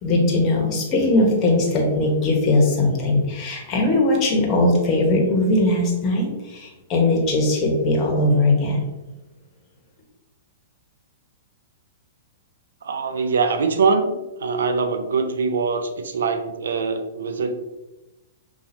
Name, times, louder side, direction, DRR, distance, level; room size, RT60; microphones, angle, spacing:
voice 1, 0.0-8.9, left 2 dB, 35° left, -1 dB, 1.3 m, -20 dB
voice 2, 12.8-17.5, right 4 dB, 80° right, 8 dB, 0.5 m, -23 dB
5.6 x 2.7 x 2.8 m, 1.0 s
hypercardioid pair, 120°, 0 cm